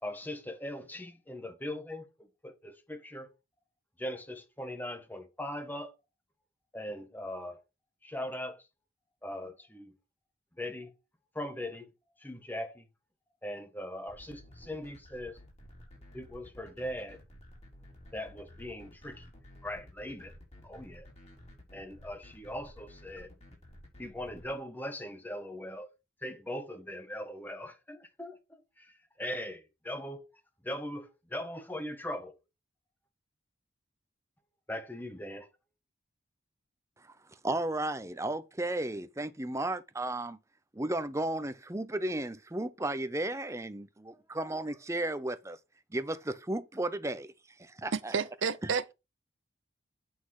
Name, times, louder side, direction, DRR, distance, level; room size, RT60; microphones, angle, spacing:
voice 1, 0.0-2.1 2.4-3.3 4.0-5.9 6.7-7.6 8.0-8.7 9.2-9.9 10.6-10.9 11.3-11.9 12.2-12.9 13.4-15.4 16.1-17.2 18.1-19.3 19.6-20.4 20.6-21.1 21.7-23.3 24.0-25.9 26.2-30.2 30.6-32.4 34.7-35.5, left 1 dB, 10° left, 1.3 m, -40 dB
sound 1, 14.1-24.5, left 1 dB, 30° left, 3.9 m, -53 dB
voice 2, 37.4-40.4 40.7-45.6 45.9-47.3 47.6-48.1, right 1 dB, 15° right, 0.6 m, -34 dB
voice 3, 47.9-48.9, right 5 dB, 70° right, 0.6 m, -31 dB
8.3 x 6.0 x 4.7 m
head